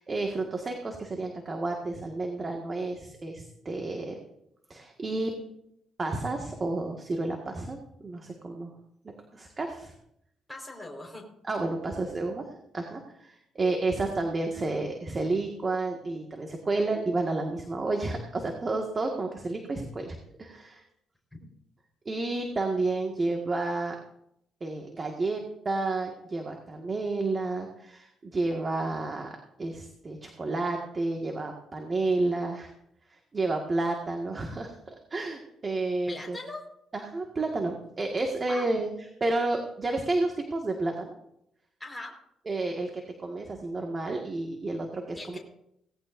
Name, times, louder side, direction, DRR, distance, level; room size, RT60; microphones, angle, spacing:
voice 1, 0.0-4.2 4.7-5.3 6.0-8.7 9.3-9.9 11.4-12.5 12.7-20.8 22.1-24.0 24.6-29.3 29.6-32.7 33.1-36.4 36.9-38.9 39.2-41.1 42.5-45.4, right 2 dB, 30° right, 2 dB, 1.8 m, -31 dB
voice 2, 10.5-11.2 36.1-36.6 38.5-38.7 41.8-42.1 45.1-45.4, left 2 dB, 5° left, 0 dB, 4.5 m, -40 dB
18.0 x 16.0 x 2.6 m, 0.78 s
cardioid pair, 90°, 0 cm